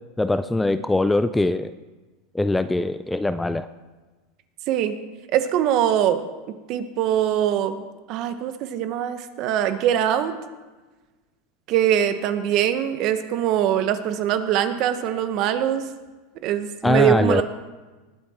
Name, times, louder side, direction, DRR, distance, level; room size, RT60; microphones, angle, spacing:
voice 1, 0.2-1.7 2.3-3.7 16.8-17.4, left 2 dB, 5° left, 13 dB, 0.3 m, -22 dB
voice 2, 5.3-6.2 6.7-10.3 11.7-15.9 16.4-17.4, right 10 dB, 45° right, 9 dB, 1.1 m, -22 dB
19.5 x 8.6 x 4.3 m, 1.2 s
supercardioid pair, 140°, 0 cm